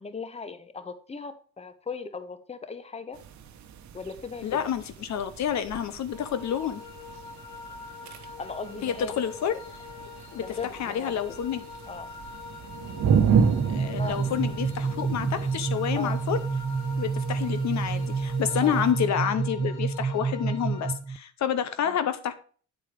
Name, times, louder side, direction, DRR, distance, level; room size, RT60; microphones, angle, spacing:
voice 1, 0.0-3.2 3.9-4.7 8.2-9.1 10.4-11.1 11.9-12.1 14.0-14.2 15.9-16.2 18.6-18.9 21.8-22.0, left 4 dB, 20° left, 12 dB, 0.9 m, -38 dB
sound 1, 3.1-18.9, right 6 dB, 65° right, 1.0 m, -32 dB
voice 2, 4.4-6.8 8.8-9.6 10.3-11.7 13.7-16.4 17.0-22.3, left 9 dB, 65° left, 12 dB, 0.8 m, -29 dB
sound 2, 6.1-20.9, left 5 dB, 90° left, 1.6 m, -44 dB
sound 3, 13.6-21.2, right 5 dB, 15° right, 0.3 m, -29 dB
9.1 x 4.3 x 5.0 m, 0.42 s
cardioid pair, 90°, 30 cm